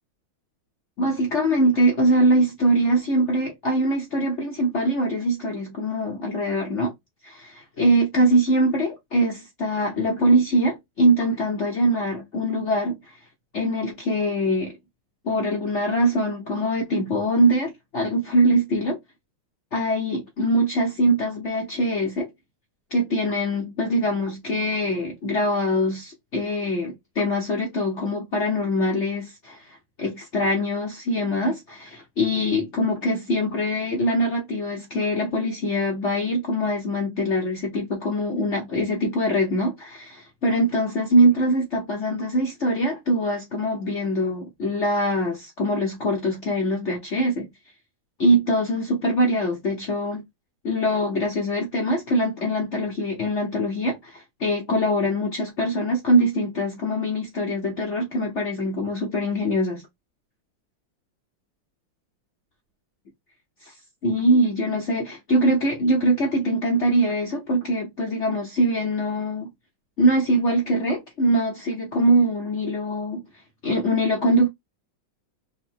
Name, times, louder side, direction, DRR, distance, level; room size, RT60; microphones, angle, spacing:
voice 1, 1.0-6.9 7.2-12.9 13.5-14.8 15.2-19.0 19.7-22.3 22.9-47.5 48.2-50.2 50.6-59.8 63.6-63.7 64.0-69.5 70.0-73.2 73.6-74.5, right 1 dB, 60° left, 0.7 m, -23 dB
3.7 x 2.1 x 4.3 m
omnidirectional pair, 2.3 m